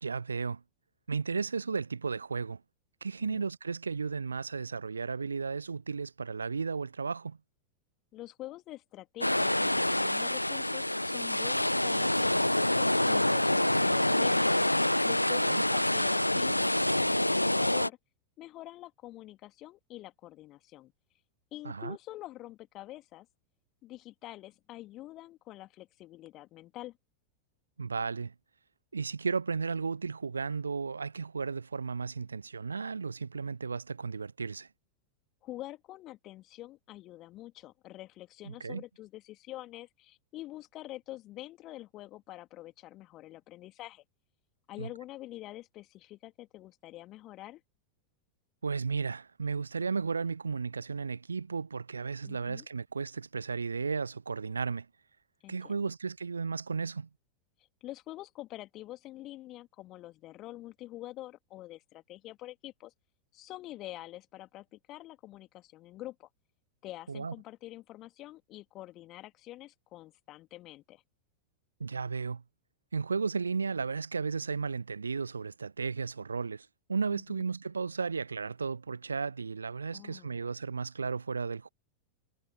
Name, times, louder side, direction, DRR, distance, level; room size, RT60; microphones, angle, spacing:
voice 1, 0.0-0.6 1.1-2.6 3.0-7.4 15.4-15.6 21.6-22.0 27.8-28.3 28.9-34.7 38.4-38.8 44.8-44.9 48.6-54.9 55.5-57.1 67.1-67.3 71.8-72.4 72.9-81.7, right 5 dB, 75° right, 0.6 m, -34 dB
voice 2, 8.1-14.5 15.0-18.0 18.4-20.9 21.5-23.3 23.8-27.0 35.4-44.0 44.7-47.6 52.2-52.7 55.4-55.9 57.8-62.9 63.3-66.3 66.8-71.0 77.1-77.4 79.9-80.5, left 16 dB, 35° left, 2.6 m, -46 dB
sound 1, 9.2-17.9, left 1 dB, 85° left, 1.1 m, -27 dB
figure-of-eight pair, 90°, 0 cm